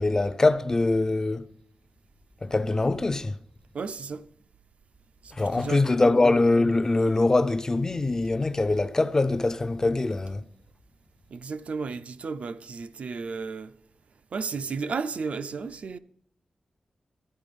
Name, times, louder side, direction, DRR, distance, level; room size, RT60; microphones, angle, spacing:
voice 1, 0.0-1.5 2.4-3.4 5.3-10.5, left 2 dB, 25° left, 0.5 m, -23 dB
voice 2, 3.7-4.3 5.2-6.2 11.3-13.8 14.3-16.0, right 5 dB, 60° right, 0.5 m, -33 dB
12.5 x 9.1 x 5.2 m
wide cardioid pair, 175°, 2 cm